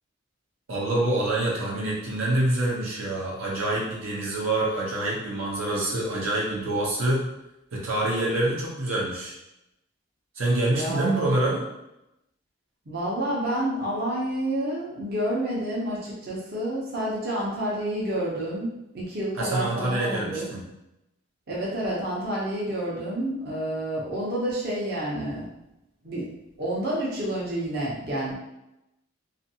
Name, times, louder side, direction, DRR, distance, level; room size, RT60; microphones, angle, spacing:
voice 1, 0.7-7.2 7.7-9.3 10.4-11.6 19.4-20.6, right 1 dB, 80° right, -5 dB, 0.8 m, -26 dB
voice 2, 10.7-11.3 12.9-20.5 21.5-25.5 26.0-26.3 26.6-28.3, right 1 dB, 50° right, -6 dB, 0.7 m, -29 dB
2.6 x 2.5 x 2.7 m, 0.90 s
head